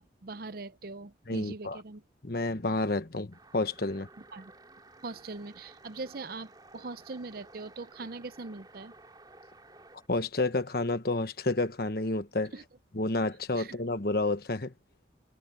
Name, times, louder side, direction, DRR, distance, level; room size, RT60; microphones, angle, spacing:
voice 1, 0.0-2.0 4.3-4.5 5.0-8.9 12.5-12.6 13.6-13.8, right 3 dB, 50° right, 0.6 m, -41 dB
voice 2, 1.3-1.8 2.2-4.1 10.1-12.5 12.9-14.7, left 2 dB, 55° left, 1.3 m, -30 dB
sound 1, 3.3-10.1, right 2 dB, 20° right, 3.0 m, -55 dB
head